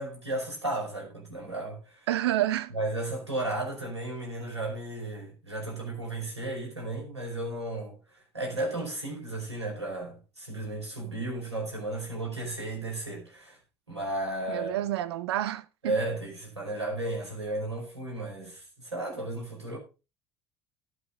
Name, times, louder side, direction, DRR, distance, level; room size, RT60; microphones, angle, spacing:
voice 1, 0.0-2.1 2.7-13.6 13.9-14.8 15.8-19.8, right 2 dB, 90° right, 5.3 m, -34 dB
voice 2, 2.1-2.7 14.5-16.0, right 13 dB, 70° right, 0.8 m, -29 dB
17.5 x 5.9 x 4.0 m
figure-of-eight pair, 65°, 14 cm